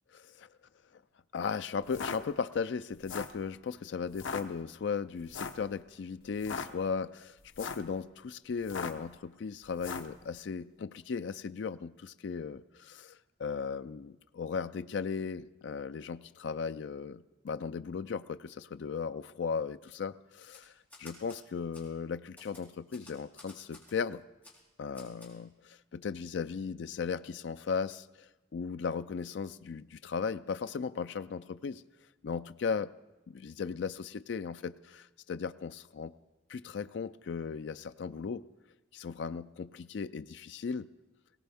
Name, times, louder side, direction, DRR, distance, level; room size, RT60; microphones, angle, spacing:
voice 1, 0.1-0.5 1.3-20.1 20.5-20.6 21.0-24.2 24.8-31.8 32.2-32.9 33.3-36.1 36.5-38.4 38.9-40.9, left 5 dB, 65° left, 12 dB, 0.4 m, -37 dB
sound 1, 1.8-2.2 2.9-3.4 4.1-4.4 5.3-5.6 6.3-6.7 7.4-7.9 8.6-9.1 9.8-10.1, left 5 dB, 85° left, 0.9 m, -38 dB
Typewriter, 20.4-21.4 21.7-21.9 22.4-24.0 24.4-24.6 24.9-25.3, left 2 dB, 10° left, 3.3 m, -54 dB
19.0 x 17.0 x 3.5 m, 1.1 s
head